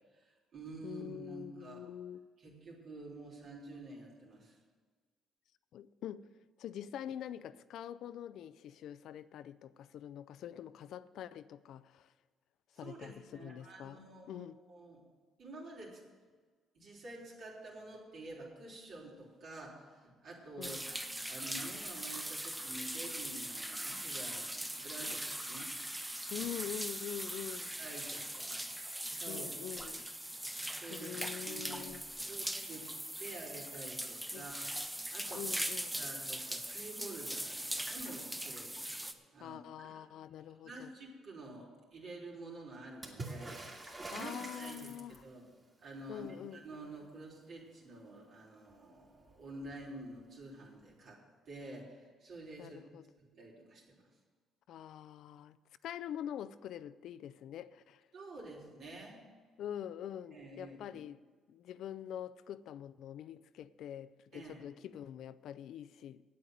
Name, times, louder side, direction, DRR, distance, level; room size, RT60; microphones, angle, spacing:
voice 1, 0.0-1.8 2.4-4.6 12.7-15.0 15.4-16.0 16.7-20.8 21.3-25.7 26.4-26.5 27.8-28.6 29.2-29.6 30.7-31.1 31.4-31.9 32.3-32.9 33.2-34.6 35.1-40.1 40.6-43.8 44.1-45.4 45.8-51.2 51.5-52.8 53.2-54.1 58.1-59.2 60.3-61.0 64.3-64.7, right 2 dB, 65° right, 3.6 m, -49 dB
voice 2, 0.8-2.3 5.7-6.3 6.6-12.1 12.8-14.6 20.6-20.8 26.3-27.7 29.3-30.1 30.9-32.0 34.3-34.5 35.3-36.0 39.4-40.9 43.9-45.2 46.1-46.6 52.6-53.0 54.7-55.6 55.8-58.0 59.6-61.2 61.5-66.2, left 10 dB, 75° left, 0.4 m, -45 dB
sound 1, 20.6-39.1, right 1 dB, 10° right, 0.9 m, -40 dB
Water / Splash splatter, 43.0-45.4 48.7-48.8 49.0-49.8 50.9-51.0, right 2 dB, 35° right, 2.5 m, -45 dB
8.6 x 8.5 x 9.2 m
supercardioid pair, 75°, 0 cm